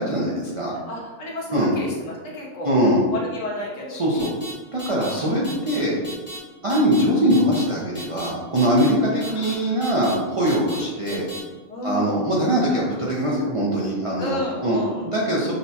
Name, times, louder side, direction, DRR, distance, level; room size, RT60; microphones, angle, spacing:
voice 1, 0.0-0.7 1.5-1.7 2.6-3.0 3.9-4.3 4.7-6.0 6.6-11.3 11.8-14.8 15.1-15.5, equal, 45° right, -6 dB, 0.4 m, -22 dB
voice 2, 0.7-4.4 5.0-5.5 9.1-10.0 11.7-12.2 14.2-15.1 15.4-15.5, left 2 dB, 70° left, -3 dB, 1.3 m, -33 dB
sound 1, 4.2-4.5 4.8-5.1 5.4-5.8 6.0-6.4 6.7-7.0 7.3-7.6 8.0-8.3 8.6-8.9 9.2-9.5 9.8-10.1 10.5-10.8 11.1-11.4, equal, 40° left, 1.0 m, -36 dB
6.4 x 2.2 x 2.8 m, 1.3 s
omnidirectional pair, 1.4 m